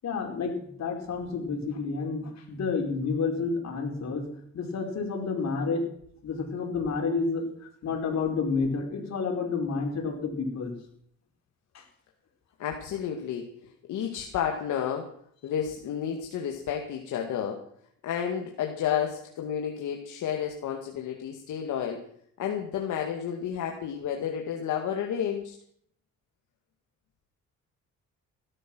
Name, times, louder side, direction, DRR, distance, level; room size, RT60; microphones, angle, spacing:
voice 1, 0.0-4.3 4.5-5.9 6.2-10.7 11.7-11.8, left 4 dB, 60° left, 2 dB, 4.9 m, -30 dB
voice 2, 12.6-15.1 15.4-17.6 18.0-22.0 22.4-25.5, left 8 dB, 80° left, 2 dB, 2.1 m, -31 dB
17.5 x 12.5 x 6.2 m, 0.65 s
cardioid pair, 90°, 30 cm